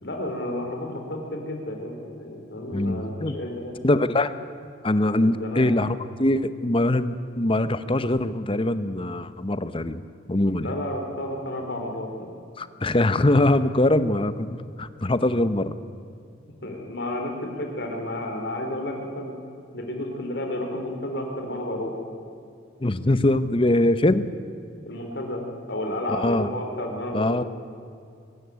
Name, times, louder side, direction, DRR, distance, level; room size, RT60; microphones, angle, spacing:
voice 1, 0.0-3.8 5.2-5.7 10.6-12.3 16.6-19.3 19.7-21.9 24.9-27.4, left 1 dB, 60° left, 2 dB, 3.8 m, -31 dB
voice 2, 2.7-3.3 3.8-4.3 4.8-10.0 10.3-10.7 12.6-15.7 22.8-24.3 26.2-26.5 27.1-27.4, left 1 dB, 25° left, 13 dB, 0.8 m, -22 dB
23.0 x 13.5 x 9.4 m, 2.4 s
head